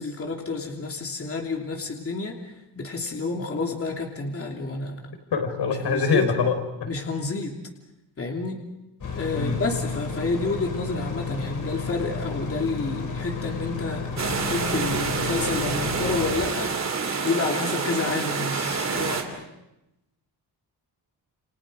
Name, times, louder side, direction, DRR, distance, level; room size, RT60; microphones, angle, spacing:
voice 1, 0.0-2.4 2.8-5.0 5.8-6.3 6.9-7.6 8.2-8.6 9.1-16.8 17.2-19.5, left 3 dB, 35° left, 1 dB, 3.0 m, -29 dB
voice 2, 5.3-6.5 6.8-6.9 9.3-9.6, left 5 dB, 80° left, 5 dB, 4.6 m, -24 dB
sound 1, 9.0-16.4, left 4 dB, 55° left, 6.4 m, -32 dB
sound 2, 14.2-19.2, right 5 dB, 40° right, 3.0 m, -28 dB
30.0 x 29.5 x 5.1 m, 0.91 s
wide cardioid pair, 155°, 40 cm